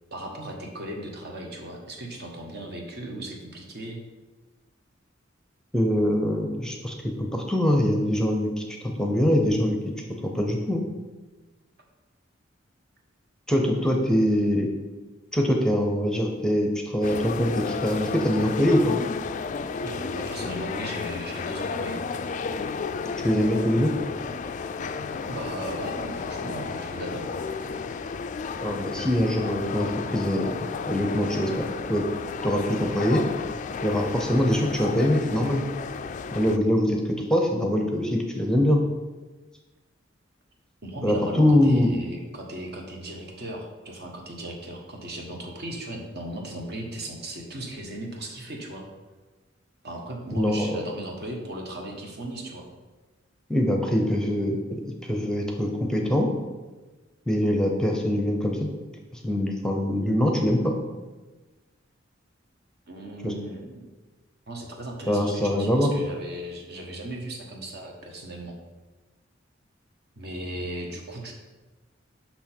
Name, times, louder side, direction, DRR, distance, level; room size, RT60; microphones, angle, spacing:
voice 1, 0.1-4.0 19.8-22.0 25.3-27.3 40.8-48.9 49.8-52.7 62.9-63.9 64.5-68.6 70.1-71.3, right 1 dB, 55° right, 1 dB, 1.2 m, -37 dB
voice 2, 5.7-9.8 10.2-10.8 13.5-14.7 15.3-19.0 23.2-23.9 28.6-30.5 30.9-31.6 31.9-32.1 32.4-33.2 33.8-35.6 36.3-38.8 41.0-41.9 50.3-50.7 53.5-56.3 57.3-58.7 59.1-60.8 63.2-63.3 65.1-65.9, left 1 dB, 5° left, 2 dB, 0.7 m, -23 dB
sound 1, 17.0-36.6, left 5 dB, 40° left, 0.3 m, -32 dB
6.1 x 5.8 x 4.4 m, 1.2 s
head